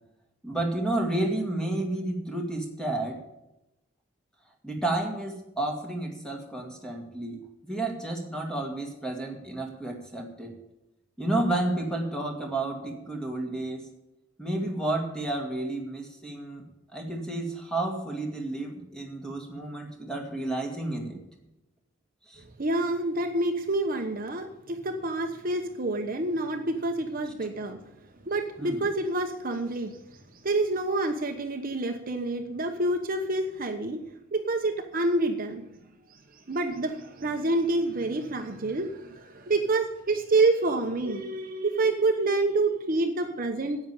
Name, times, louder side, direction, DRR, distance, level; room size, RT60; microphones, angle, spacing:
voice 1, 0.4-3.2 4.6-7.4 7.6-10.5 11.2-13.8 14.4-16.6 16.9-21.2 22.3-22.4 28.6-28.8, right 2 dB, 5° left, 1 dB, 2.3 m, -31 dB
voice 2, 22.6-27.8 28.2-30.0 30.4-34.0 34.3-35.6 36.1-36.2 36.5-43.8, right 2 dB, 45° right, 5 dB, 1.0 m, -27 dB
10.0 x 8.7 x 8.6 m, 0.91 s
head